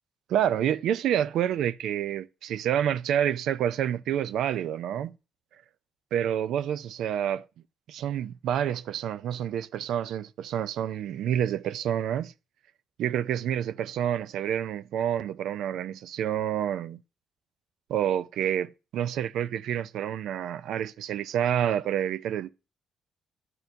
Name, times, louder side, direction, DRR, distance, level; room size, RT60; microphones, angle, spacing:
voice 1, 0.3-5.2 6.1-7.5 7.9-12.3 13.0-17.0 17.9-22.5, right 10 dB, 80° right, 0.3 m, -28 dB
10.5 x 4.3 x 2.6 m
cardioid pair, 90°, 0 cm